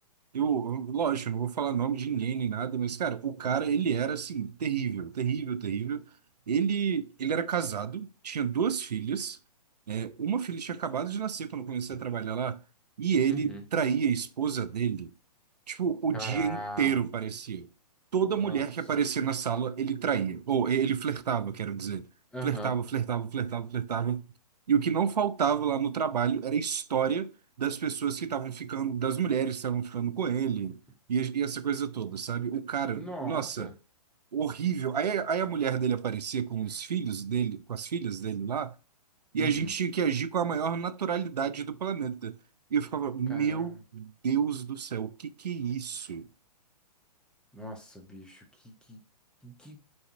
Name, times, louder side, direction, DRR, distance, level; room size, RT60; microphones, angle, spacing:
voice 1, 0.3-6.1 6.5-9.4 9.9-12.6 13.0-15.1 15.7-17.7 18.1-22.1 22.4-24.3 24.7-27.3 27.6-30.8 31.1-33.7 34.3-38.7 39.3-42.3 42.7-46.2, right 7 dB, 75° right, 0.5 m, -29 dB
voice 2, 13.3-13.6 16.1-17.0 18.4-18.6 22.3-22.7 32.9-33.7 39.4-39.7 43.3-43.8 47.5-49.0 49.4-49.8, right 1 dB, 5° left, 0.7 m, -40 dB
4.8 x 3.1 x 2.7 m
figure-of-eight pair, 125°, 21 cm